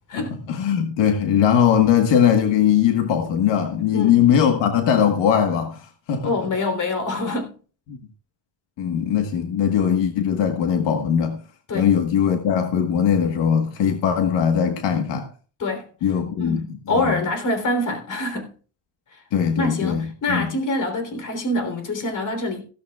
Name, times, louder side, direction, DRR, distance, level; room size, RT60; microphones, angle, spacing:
voice 1, 0.1-6.3 7.9-8.0 8.8-11.4 11.7-15.3 16.0-16.6 16.9-17.2 19.3-20.5, left 8 dB, 80° left, 1.5 m, -20 dB
voice 2, 6.2-7.6 11.7-11.9 15.6-15.9 16.4-18.5 19.6-22.6, left 2 dB, 45° left, 3.6 m, -25 dB
15.5 x 13.5 x 2.4 m
cardioid pair, 130°, 43 cm